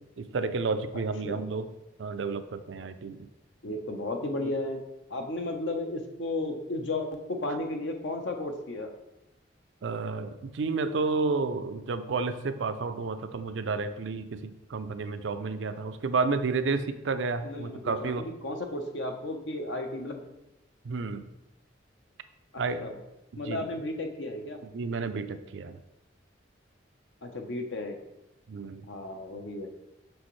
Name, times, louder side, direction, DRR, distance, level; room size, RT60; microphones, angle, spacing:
voice 1, 0.2-1.7 2.0-3.3 9.8-18.2 20.8-21.3 22.6-22.8 23.5-23.7 24.7-25.7 28.5-28.8, right 4 dB, 75° right, 10 dB, 0.5 m, -31 dB
voice 2, 3.6-4.8 5.1-8.9 17.4-20.2 22.8-22.9 23.4-24.6 27.2-27.9 28.8-29.7, left 2 dB, 75° left, 4 dB, 0.9 m, -34 dB
6.2 x 6.1 x 3.2 m, 0.93 s
head